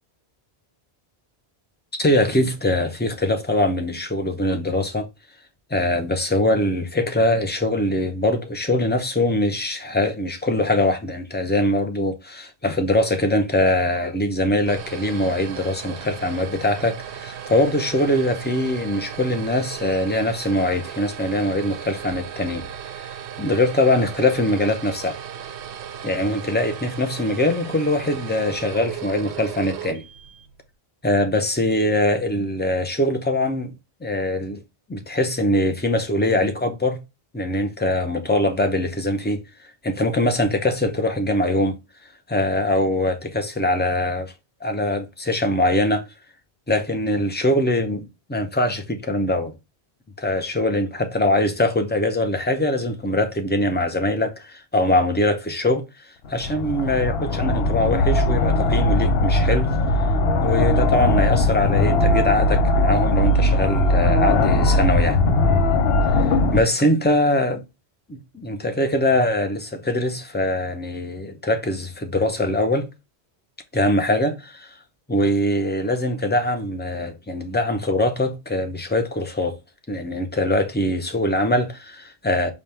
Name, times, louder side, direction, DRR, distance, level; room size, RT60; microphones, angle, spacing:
voice 1, 2.0-5.1 5.7-22.6 22.9-25.2 26.0-30.0 31.0-33.7 34.0-34.6 34.9-37.0 37.3-41.8 42.3-44.3 44.6-46.1 46.7-49.5 50.2-59.7 60.4-65.2 66.5-67.6 68.1-72.9 73.7-74.7 75.1-79.6 79.9-82.5, left 1 dB, 15° left, 0.4 m, -22 dB
sound 1, 14.4-30.6, right 9 dB, 80° right, 0.9 m, -36 dB
sound 2, 56.2-66.6, left 2 dB, 65° left, 0.8 m, -19 dB
5.2 x 2.3 x 4.3 m
omnidirectional pair, 1.1 m